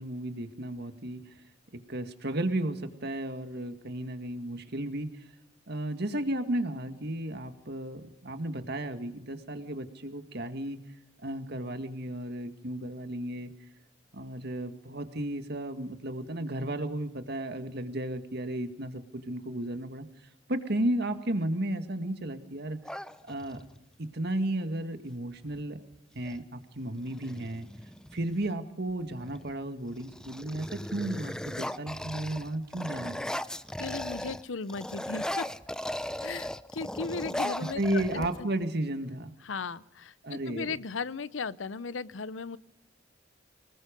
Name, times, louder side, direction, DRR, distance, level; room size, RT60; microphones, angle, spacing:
voice 1, 0.0-1.3 1.9-5.2 5.7-10.8 11.2-13.5 14.1-20.1 20.5-22.8 23.3-23.6 24.0-25.8 26.2-27.7 28.1-33.4 37.7-39.3 40.2-40.8, right 1 dB, 60° right, 8 dB, 2.0 m, -33 dB
sound 1, 22.8-23.8 25.5-25.6 25.9-26.4 27.0-28.5 29.1-29.5 29.9-34.4 34.7-38.6, left 1 dB, 5° left, 0.7 m, -37 dB
voice 2, 33.8-35.5 36.2-38.5 39.4-42.6, left 4 dB, 90° left, 17 dB, 0.7 m, -36 dB
25.0 x 20.5 x 5.3 m, 0.83 s
head